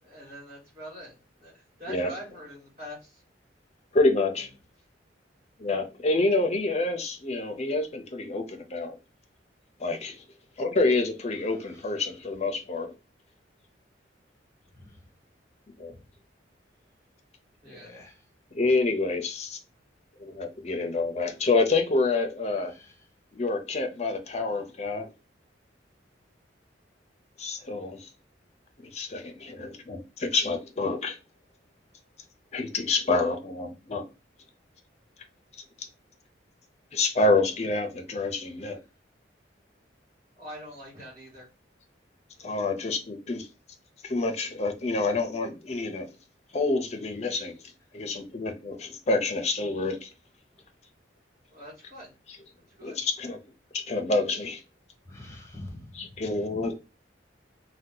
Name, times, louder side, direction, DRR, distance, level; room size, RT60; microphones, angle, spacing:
voice 1, 0.0-3.2 17.6-17.9 40.4-41.5 51.5-52.1 52.8-53.1, equal, 40° right, 1.6 m, -44 dB
voice 2, 3.9-4.5 5.6-9.0 9.8-10.2 10.6-12.9 15.8-15.9 18.5-19.6 20.2-22.7 23.3-25.1 27.4-28.1 28.8-31.2 32.5-34.0 35.8-35.9 36.9-38.8 42.4-43.5 44.0-46.1 46.5-47.6 47.9-50.1 52.8-53.4 53.9-54.6 55.9-56.7, left 3 dB, 35° left, 0.5 m, -27 dB
voice 3, 17.6-18.2 22.6-22.9 55.1-56.7, left 1 dB, 15° left, 0.9 m, -46 dB
2.7 x 2.2 x 3.6 m
head